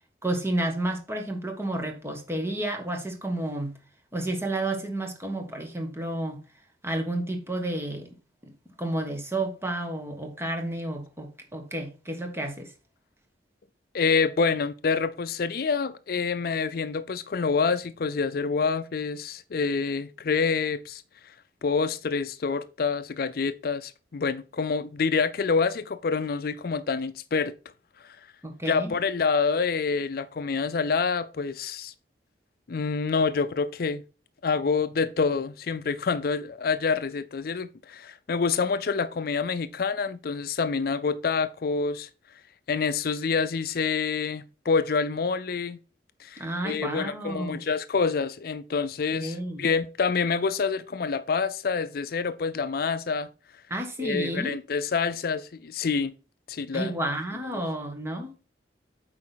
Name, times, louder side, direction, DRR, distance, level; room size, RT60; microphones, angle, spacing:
voice 1, 0.2-3.8 4.1-6.4 6.8-8.1 8.8-12.7 28.4-28.9 46.4-47.6 49.1-49.6 53.7-54.5 56.7-58.3, right 1 dB, 15° right, 1.3 m, -31 dB
voice 2, 13.9-21.0 21.6-27.5 28.0-28.2 28.7-31.9 32.7-34.0 34.4-42.1 42.7-45.8 46.2-53.3 54.0-56.1 56.5-56.9, left 5 dB, 55° left, 0.4 m, -27 dB
8.6 x 4.8 x 4.0 m
head